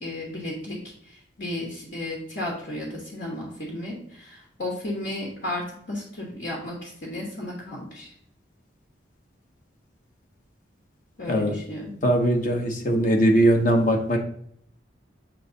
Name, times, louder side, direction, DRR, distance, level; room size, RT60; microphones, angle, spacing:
voice 1, 0.0-8.1 11.2-12.0, left 1 dB, 60° left, -2 dB, 1.4 m, -34 dB
voice 2, 12.0-14.2, right 1 dB, 40° left, 3 dB, 0.9 m, -20 dB
7.6 x 3.1 x 3.9 m, 0.66 s
head